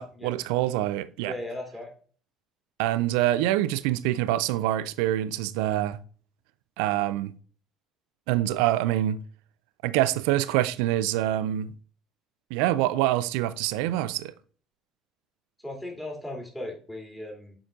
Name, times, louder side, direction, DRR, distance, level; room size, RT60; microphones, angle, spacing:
voice 1, 0.0-1.3 2.8-6.0 6.8-7.3 8.3-9.2 9.8-11.7 12.5-14.3, right 14 dB, 70° right, 0.4 m, -25 dB
voice 2, 1.2-1.9 15.6-17.6, left 1 dB, 10° left, 2.6 m, -37 dB
7.4 x 5.1 x 2.5 m
hypercardioid pair, 60°, 0 cm